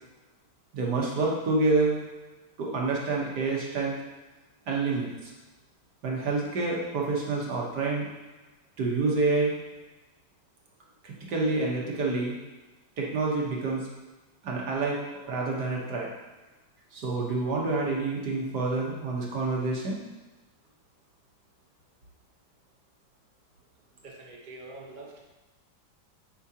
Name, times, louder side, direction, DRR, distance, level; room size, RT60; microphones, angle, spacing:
voice 1, 0.7-2.0 2.6-4.0 4.7-5.3 6.0-8.1 8.8-9.5 11.0-12.3 13.0-13.9 14.4-16.1 16.9-20.0, right 3 dB, 60° right, -2 dB, 1.6 m, -28 dB
voice 2, 24.0-25.2, right 2 dB, 35° right, -2 dB, 0.8 m, -45 dB
8.4 x 5.0 x 2.8 m, 1.1 s
omnidirectional pair, 2.2 m